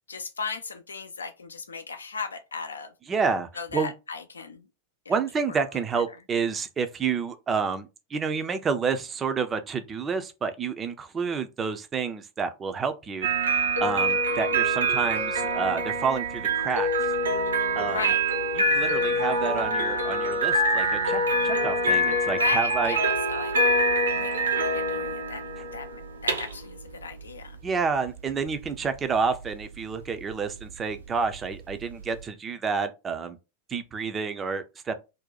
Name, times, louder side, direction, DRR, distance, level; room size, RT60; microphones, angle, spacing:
voice 1, 0.1-2.9 3.6-4.6 5.1-5.2 17.9-18.2 22.4-23.5 24.2-25.4 25.7-25.9 26.2-27.6, left 5 dB, 70° left, 0.4 m, -36 dB
voice 2, 3.1-3.9 5.1-16.9 17.8-18.1 18.6-23.0 25.6-25.7 27.6-33.4 33.7-34.9, right 5 dB, 20° right, 0.5 m, -29 dB
sound 1, 13.2-32.2, right 1 dB, 70° right, 0.6 m, -26 dB
2.6 x 2.1 x 4.0 m
figure-of-eight pair, 90°, 0 cm